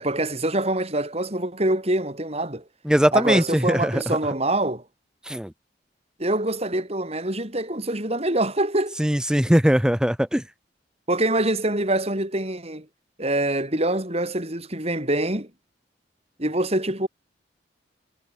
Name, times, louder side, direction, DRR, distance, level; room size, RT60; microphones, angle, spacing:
voice 1, 0.0-2.6 3.1-4.8 6.2-9.0 11.1-12.9 13.2-15.5 16.4-17.1, right 1 dB, 35° right, 6.5 m, -25 dB
voice 2, 2.8-4.0 5.3-5.5 9.0-10.4, equal, 5° right, 1.3 m, -20 dB
head